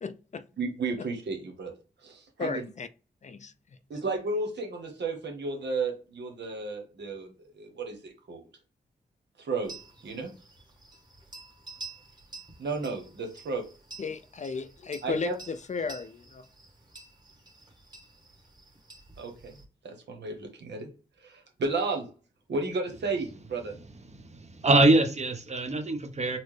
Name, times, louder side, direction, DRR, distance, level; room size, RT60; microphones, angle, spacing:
voice 1, 0.0-0.4 2.4-2.9 3.2-3.5 14.0-16.4, left 5 dB, 40° left, 0.4 m, -34 dB
voice 2, 0.6-1.7 2.0-2.7 3.9-8.4 9.4-9.7 10.0-10.3 12.6-13.6 15.0-15.4 19.2-19.5 19.8-20.9 21.2-22.1 22.5-23.7, right 3 dB, 80° right, 1.0 m, -33 dB
sound 1, 9.6-19.6, right 3 dB, 25° right, 1.3 m, -49 dB
voice 3, 24.1-26.4, right 2 dB, 40° right, 0.8 m, -24 dB
4.2 x 2.0 x 3.2 m
cardioid pair, 45°, 18 cm